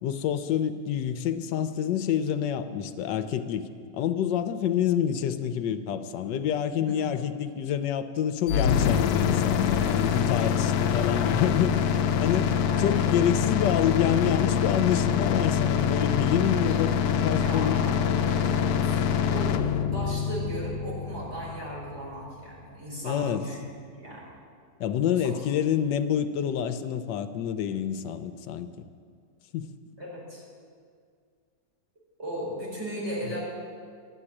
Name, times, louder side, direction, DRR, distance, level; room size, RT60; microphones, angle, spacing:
voice 1, 0.0-11.9 12.2-17.9 23.0-23.4 24.8-28.7 29.5-29.7, left 9 dB, 85° left, 10 dB, 1.3 m, -27 dB
voice 2, 6.8-7.1 9.7-10.1 12.7-12.8 16.7-16.8 17.4-23.6 24.0-24.2 25.2-25.3 30.0-30.4 32.2-33.4, right 1 dB, 35° right, -6 dB, 4.6 m, -37 dB
sound 1, 8.5-22.4, left 7 dB, 70° left, 1.0 m, -25 dB
12.0 x 7.5 x 9.9 m, 2.1 s
omnidirectional pair, 1.9 m